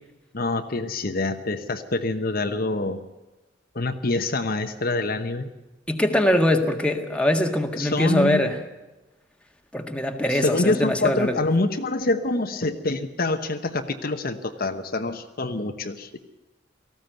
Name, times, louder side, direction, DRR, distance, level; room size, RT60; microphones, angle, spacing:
voice 1, 0.3-3.0 3.7-5.5 7.7-8.4 10.3-16.2, left 2 dB, 55° left, 7 dB, 1.1 m, -26 dB
voice 2, 5.9-8.6 9.7-11.4, left 1 dB, 5° left, 3 dB, 1.7 m, -22 dB
18.5 x 15.0 x 9.2 m, 1.1 s
head